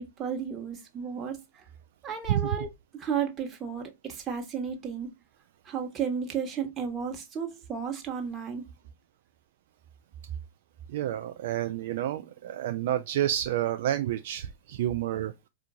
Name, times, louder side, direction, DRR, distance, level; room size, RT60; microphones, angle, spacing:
voice 1, 0.0-1.6 2.0-2.7 2.9-5.1 5.6-8.6, right 7 dB, 25° right, 1.2 m, -33 dB
voice 2, 10.9-15.3, right 12 dB, 55° right, 0.3 m, -29 dB
4.4 x 2.4 x 2.8 m
figure-of-eight pair, 90°, 0 cm